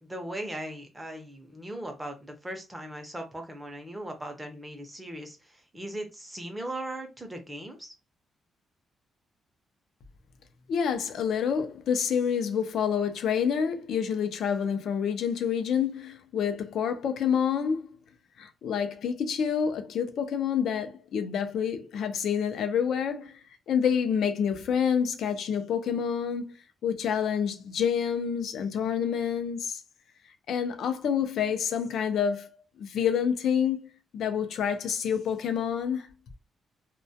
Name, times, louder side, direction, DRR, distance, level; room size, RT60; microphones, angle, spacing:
voice 1, 0.0-7.9, right 1 dB, 10° right, 0.6 m, -38 dB
voice 2, 10.7-17.9 18.4-26.5 26.8-29.8 30.5-32.5 32.8-33.8 34.1-36.1, left 7 dB, 70° left, 0.4 m, -28 dB
2.2 x 2.2 x 2.6 m
cardioid pair, 145°, 0 cm